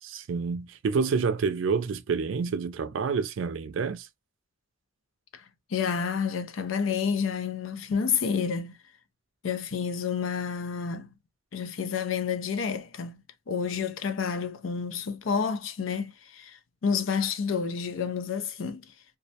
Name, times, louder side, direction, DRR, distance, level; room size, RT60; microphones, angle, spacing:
voice 1, 0.0-4.1, right 5 dB, 75° right, 0.4 m, -28 dB
voice 2, 5.7-8.8 9.4-11.1 11.5-18.8, left 6 dB, 85° left, 0.5 m, -29 dB
2.3 x 2.1 x 2.7 m
head